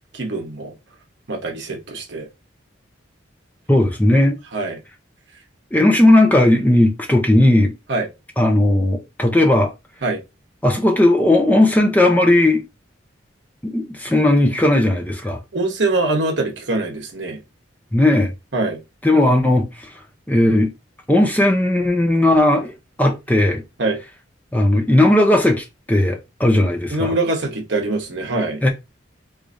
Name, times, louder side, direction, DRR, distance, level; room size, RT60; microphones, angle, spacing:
voice 1, 0.1-0.7 1.3-2.3 4.5-4.8 7.9-8.1 10.0-10.2 15.5-17.4 18.5-18.8 23.8-24.0 26.9-28.6, right 2 dB, 60° right, 0.9 m, -23 dB
voice 2, 3.7-4.4 5.7-7.7 8.4-9.7 10.6-12.6 13.6-15.4 17.9-18.3 19.0-19.9 20.3-20.7 21.1-22.7 23.0-23.6 24.5-27.1 28.6-28.7, left 1 dB, 10° left, 0.5 m, -16 dB
4.6 x 2.5 x 2.6 m
head